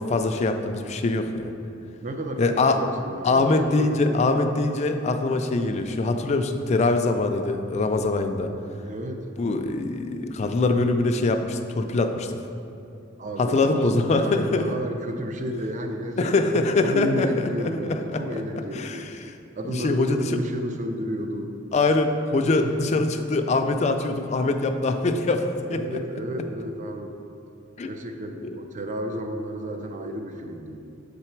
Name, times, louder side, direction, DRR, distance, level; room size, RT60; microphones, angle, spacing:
voice 1, 0.0-1.5 2.4-2.8 3.2-8.5 9.4-12.4 13.4-14.7 16.2-18.4 18.7-19.1 19.7-20.3 21.7-26.0 27.8-27.9 28.4-28.6, left 3 dB, 35° left, 6 dB, 0.3 m, -23 dB
voice 2, 2.0-4.2 8.8-9.2 13.2-19.1 19.6-21.6 22.5-23.4 25.7-27.2 27.8-30.8, equal, 40° right, 5 dB, 0.5 m, -32 dB
6.7 x 3.9 x 4.5 m, 2.7 s
head